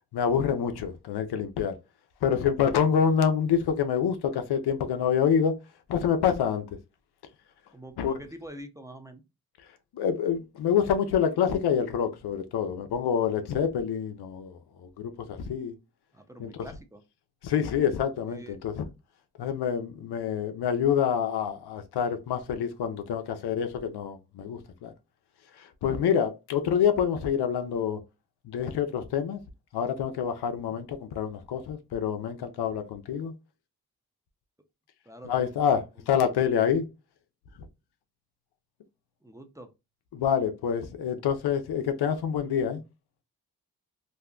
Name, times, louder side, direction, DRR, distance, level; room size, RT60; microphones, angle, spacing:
voice 1, 0.1-1.8 2.2-5.6 5.9-6.6 8.0-8.2 9.9-15.7 16.4-16.5 17.4-18.9 19.4-24.9 25.5-28.0 28.4-29.4 29.7-33.3 35.2-36.9 40.1-42.8, left 8 dB, 85° left, 0.6 m, -27 dB
voice 2, 7.7-9.2 16.1-17.0 18.3-18.6 35.1-35.5 36.0-36.1 36.4-36.5 39.2-39.7, right 1 dB, 10° right, 0.7 m, -45 dB
2.7 x 2.1 x 3.6 m
cardioid pair, 45°, 38 cm